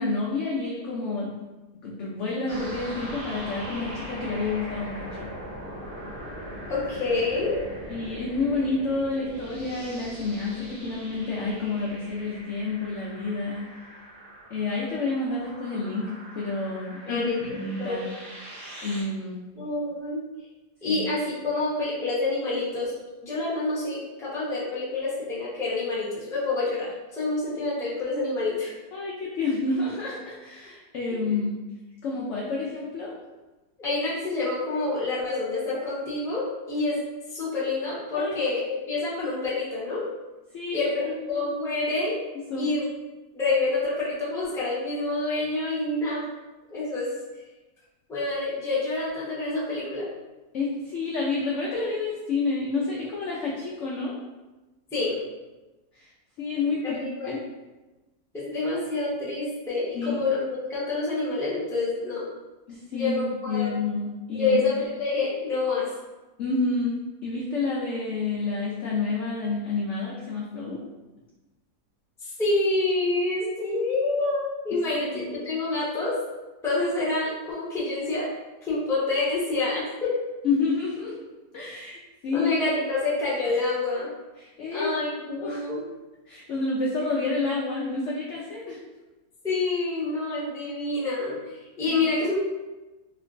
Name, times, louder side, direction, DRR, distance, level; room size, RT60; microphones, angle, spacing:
voice 1, 0.0-1.3 1.8-5.3 7.9-13.6 14.5-18.1 18.8-19.4 20.9-21.0 28.9-31.6 32.0-33.1 38.1-38.4 39.0-39.1 40.5-40.8 41.0-41.5 42.5-42.7 50.5-54.1 55.9-56.1 56.4-57.4 59.9-60.2 62.7-64.6 66.4-70.8 75.0-75.3 80.4-81.2 81.5-82.6 84.4-84.9 85.3-85.6 86.3-88.8 91.9-92.0, left 3 dB, 70° left, -4 dB, 0.7 m, -29 dB
sound 1, 2.5-19.0, equal, 70° right, 1.5 m, -41 dB
voice 2, 6.7-7.6 17.1-18.0 19.6-20.2 20.8-22.9 23.2-28.7 31.1-31.4 33.8-37.0 37.3-38.6 38.9-40.0 40.7-42.2 42.5-42.9 43.3-46.2 46.7-47.1 48.1-50.1 54.9-55.2 56.8-57.3 58.3-62.3 62.9-63.7 64.3-65.9 72.2-76.1 76.6-78.3 78.6-80.1 82.3-84.1 84.7-85.1 85.4-85.8 89.4-92.4, left 3 dB, 5° left, -8 dB, 0.6 m, -27 dB
3.3 x 2.9 x 2.5 m, 1.1 s
omnidirectional pair, 1.7 m